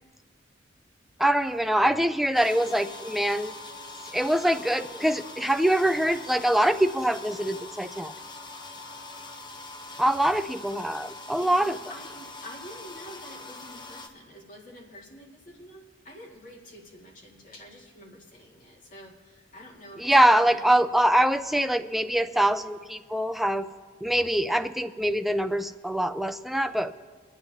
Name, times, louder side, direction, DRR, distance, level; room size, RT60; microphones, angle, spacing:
voice 1, 1.2-3.5 4.1-8.1 10.0-11.8 20.0-23.7 24.0-26.9, right 1 dB, ahead, 10 dB, 0.3 m, -24 dB
sound 1, 2.3-14.1, left 3 dB, 25° left, 0.7 m, -43 dB
voice 2, 11.3-20.8, equal, 45° left, -2 dB, 2.0 m, -47 dB
26.5 x 9.6 x 2.8 m, 1.5 s
head